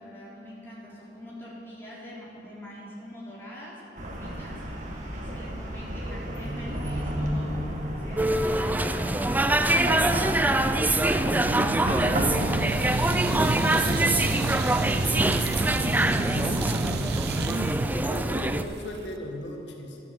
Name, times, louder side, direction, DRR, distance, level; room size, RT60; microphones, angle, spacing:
voice 1, 0.0-7.6 8.0-10.0 10.4-14.5, equal, 15° left, -7 dB, 3.9 m, -44 dB
Chatter / Car passing by / Traffic noise roadway noise, 4.0-18.2, equal, 45° right, 1.7 m, -34 dB
sound 1, 8.2-18.6, right 1 dB, 10° right, 0.4 m, -25 dB
sound 2, 11.2-19.2, right 3 dB, 60° right, 0.6 m, -31 dB
voice 2, 16.0-16.8 17.9-20.0, left 1 dB, 90° left, 1 dB, 1.5 m, -38 dB
12.0 x 12.0 x 7.6 m, 3.0 s
head